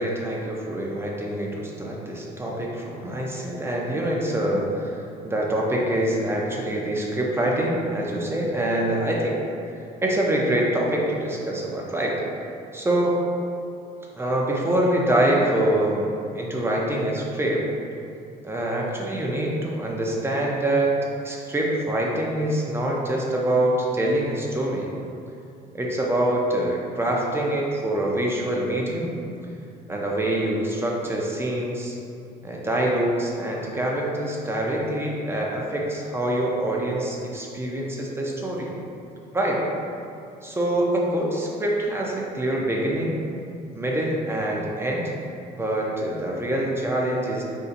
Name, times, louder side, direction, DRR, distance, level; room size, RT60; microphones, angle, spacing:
voice 1, 0.0-9.4 9.7-12.2 12.7-13.2 14.1-17.6 18.4-20.9 21.2-24.9 25.7-29.1 29.9-32.0 32.4-38.7 39.3-39.6 40.4-43.2 43.7-45.1 45.5-47.4, right 1 dB, 15° right, -2 dB, 0.5 m, -25 dB
3.9 x 2.7 x 2.5 m, 2.6 s
cardioid pair, 110°, 17 cm